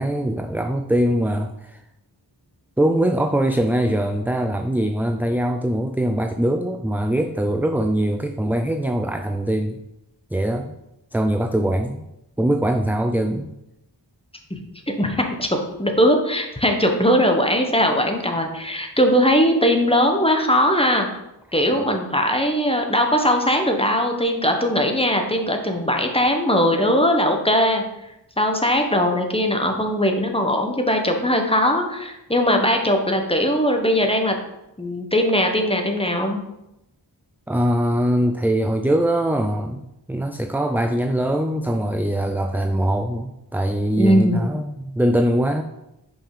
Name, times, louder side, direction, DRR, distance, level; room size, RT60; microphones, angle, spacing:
voice 1, 0.0-1.8 2.8-9.8 10.3-10.7 11.1-12.0 12.4-13.5 21.7-22.0 37.5-45.6, right 1 dB, 5° right, 6 dB, 0.3 m, -22 dB
voice 2, 15.0-21.1 21.5-27.8 28.4-34.4 34.8-36.4 43.9-44.5, equal, 10° left, 3 dB, 1.1 m, -20 dB
5.6 x 5.5 x 4.9 m, 0.88 s
wide cardioid pair, 50°, 46 cm